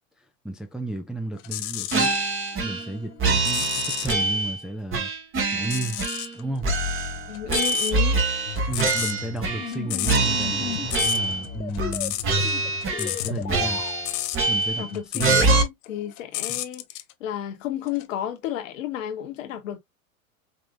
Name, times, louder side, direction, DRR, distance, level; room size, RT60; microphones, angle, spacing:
voice 1, 0.4-2.1 2.6-5.1 5.5-6.0 6.3-6.7 8.7-12.2 13.0-13.8 14.5-15.6 16.5-16.6, right 2 dB, ahead, 0.6 m, -33 dB
sound 1, 1.4-2.2 2.6-4.2 5.6-6.4 6.7-15.6 15.8-17.1 17.9-18.0, left 16 dB, 40° left, 0.7 m, -32 dB
sound 2, 1.9-2.9 3.2-4.6 4.9-6.3 6.6-9.8 10.0-11.4 11.8-12.0 12.2-13.2 13.5-14.9 15.2-15.6, right 3 dB, 30° right, 1.6 m, -24 dB
voice 2, 7.3-8.2 14.8-16.8 17.2-19.8, left 10 dB, 60° left, 1.4 m, -32 dB
sound 3, 8.5-14.0, left 8 dB, 80° left, 1.0 m, -35 dB
5.2 x 3.0 x 2.4 m
hypercardioid pair, 90°, 42 cm